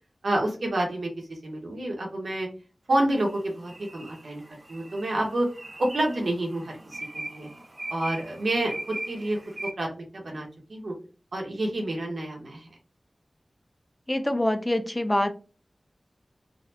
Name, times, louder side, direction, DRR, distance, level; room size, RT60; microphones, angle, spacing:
voice 1, 0.2-2.5 2.9-4.4 4.7-5.5 5.8-7.5 7.9-10.9 11.3-12.7, right 1 dB, 85° right, 0 dB, 1.0 m, -29 dB
sound 1, 3.1-9.7, right 1 dB, 40° right, 0.5 m, -40 dB
voice 2, 14.1-15.3, left 1 dB, 20° left, 9 dB, 0.4 m, -25 dB
3.9 x 2.1 x 2.8 m, 0.36 s
wide cardioid pair, 60°, 0 cm